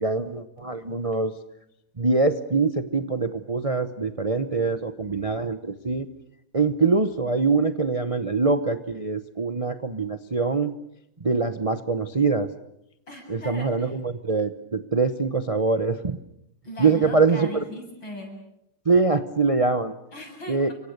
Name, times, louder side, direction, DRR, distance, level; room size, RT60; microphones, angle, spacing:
voice 1, 0.0-1.3 2.0-6.1 6.5-10.7 11.2-12.5 13.3-16.2 16.8-17.5 18.8-19.9 20.5-20.7, right 4 dB, 35° right, 9 dB, 0.5 m, -23 dB
voice 2, 13.1-14.0 16.6-18.3 20.1-20.7, left 1 dB, 75° left, 2 dB, 8.6 m, -39 dB
29.5 x 24.5 x 6.7 m, 0.81 s
omnidirectional pair, 2.2 m